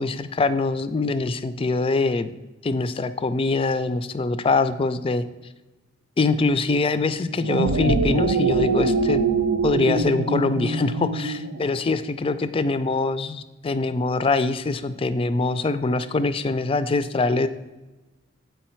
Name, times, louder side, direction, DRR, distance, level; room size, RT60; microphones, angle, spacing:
voice 1, 0.0-2.3 2.6-5.3 6.2-9.2 9.6-17.5, left 3 dB, 25° left, 13 dB, 0.3 m, -23 dB
sound 1, 7.3-11.9, right 3 dB, 80° right, 0.5 m, -23 dB
8.0 x 4.7 x 4.4 m, 1.1 s
head